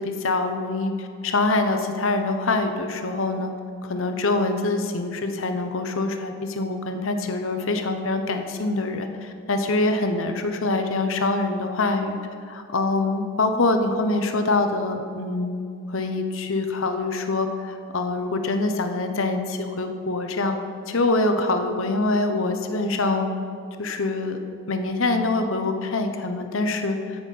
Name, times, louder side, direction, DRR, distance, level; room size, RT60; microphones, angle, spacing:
voice 1, 0.0-3.5 3.8-12.2 12.5-15.6 15.9-20.6 20.9-23.3 23.8-24.4 24.7-27.3, left 2 dB, 70° left, 6 dB, 0.9 m, -25 dB
16.0 x 6.3 x 5.4 m, 2.4 s
head